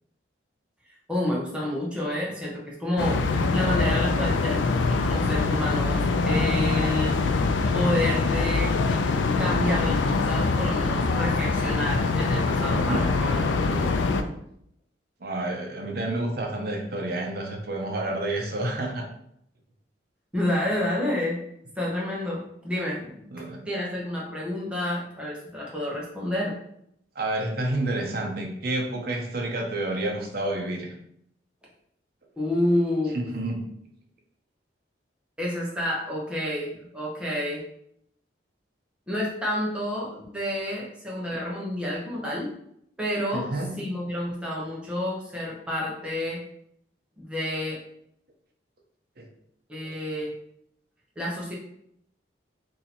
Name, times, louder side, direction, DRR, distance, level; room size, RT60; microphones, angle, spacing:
voice 1, 0.9-3.2 3.5-7.2 7.7-8.7 9.4-13.9 20.3-21.4 21.8-23.2 23.6-26.6 32.4-33.2 35.4-37.6 39.1-42.5 43.0-46.4 47.2-47.8 49.7-50.3 51.2-51.5, left 1 dB, 5° right, -5 dB, 0.9 m, -29 dB
sound 1, 3.0-14.2, left 3 dB, 85° left, 0.4 m, -24 dB
voice 2, 12.7-13.1 15.2-19.1 23.3-23.6 27.1-30.9 33.1-33.7 43.3-43.7 49.2-49.3, right 2 dB, 55° right, 2 dB, 0.7 m, -29 dB
2.8 x 2.8 x 4.1 m, 0.73 s
head